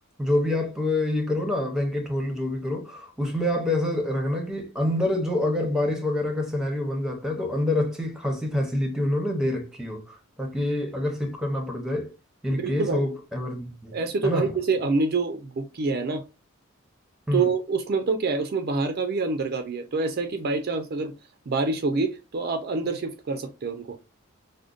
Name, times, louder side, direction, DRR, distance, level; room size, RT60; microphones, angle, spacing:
voice 1, 0.2-12.1 12.4-13.9 14.2-14.5 17.3-17.5, left 1 dB, 5° right, 0.6 m, -26 dB
voice 2, 12.5-13.1 13.9-16.2 17.3-21.1 21.5-24.0, right 4 dB, 45° right, 0.4 m, -26 dB
5.0 x 2.1 x 2.4 m
head